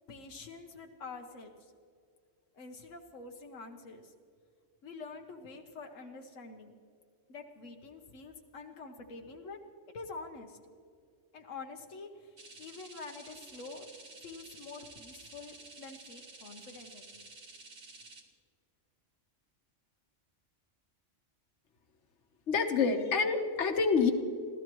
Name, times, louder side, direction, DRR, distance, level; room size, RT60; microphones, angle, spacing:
voice 1, 0.1-1.7 2.5-4.1 4.8-6.8 7.3-9.6 9.9-10.6 11.3-13.9 14.2-17.3, left 4 dB, 85° left, 3 dB, 1.4 m, -47 dB
sound 1, 12.4-18.2, right 3 dB, 70° right, 1.9 m, -52 dB
voice 2, 22.5-24.1, left 5 dB, 65° left, 5 dB, 1.5 m, -27 dB
26.5 x 16.0 x 3.1 m, 2.3 s
omnidirectional pair, 1.3 m